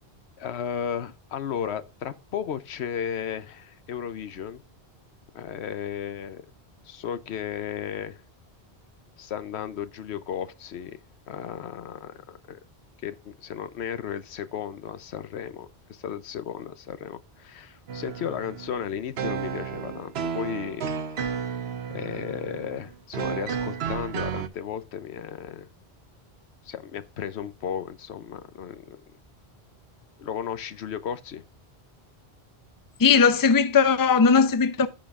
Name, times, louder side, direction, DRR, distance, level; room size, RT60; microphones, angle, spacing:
voice 1, 0.4-4.6 5.3-6.4 6.8-8.2 9.2-11.0 11.3-12.6 13.0-20.9 21.2-21.5 21.9-25.7 26.6-29.0 30.2-31.4, left 8 dB, 80° left, 1.0 m, -34 dB
sound 1, 17.9-24.5, right 7 dB, 70° right, 1.0 m, -32 dB
voice 2, 33.0-34.9, left 5 dB, 25° left, 0.5 m, -18 dB
13.5 x 5.2 x 2.4 m
omnidirectional pair, 1.1 m